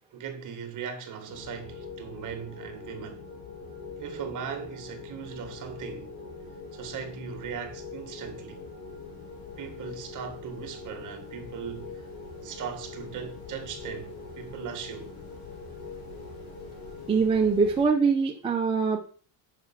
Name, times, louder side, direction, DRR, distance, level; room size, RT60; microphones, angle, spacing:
voice 1, 0.1-3.2 4.0-6.1 6.7-8.7 9.6-12.0 12.4-15.1, right 7 dB, 40° right, 1.7 m, -39 dB
sound 1, 1.3-17.9, left 4 dB, 55° left, 3.3 m, -43 dB
voice 2, 17.1-19.0, right 5 dB, 10° right, 0.6 m, -23 dB
6.8 x 5.7 x 5.8 m
cardioid pair, 160°, 45 cm